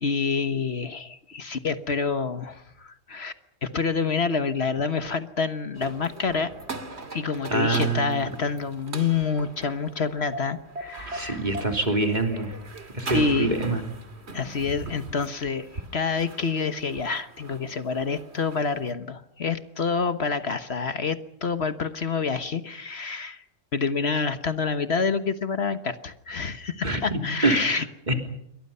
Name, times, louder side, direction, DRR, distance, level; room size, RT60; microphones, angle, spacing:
voice 1, 0.0-3.3 3.6-6.5 7.1-11.4 13.1-13.5 14.3-23.4 23.7-27.8, left 5 dB, 60° left, 10 dB, 1.5 m, -27 dB
sound 1, 5.7-18.9, right 2 dB, 60° right, 2.5 m, -40 dB
voice 2, 7.5-8.3 11.1-12.5 12.9-13.8 26.8-27.7 28.1-28.2, right 2 dB, 35° right, 4 dB, 3.5 m, -25 dB
28.0 x 23.5 x 5.6 m, 0.76 s
omnidirectional pair, 1.3 m